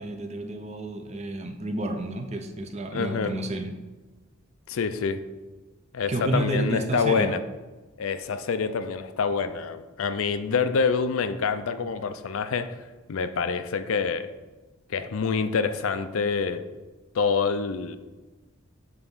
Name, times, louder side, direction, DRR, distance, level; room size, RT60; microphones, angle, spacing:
voice 1, 0.0-3.8 6.0-7.4, right 1 dB, 30° right, 6 dB, 0.6 m, -30 dB
voice 2, 2.9-3.3 4.7-5.2 5.9-7.4 8.0-12.8 13.1-14.3 14.9-16.6 17.1-18.0, left 5 dB, 70° left, 11 dB, 0.4 m, -26 dB
6.8 x 3.5 x 5.4 m, 1.3 s
head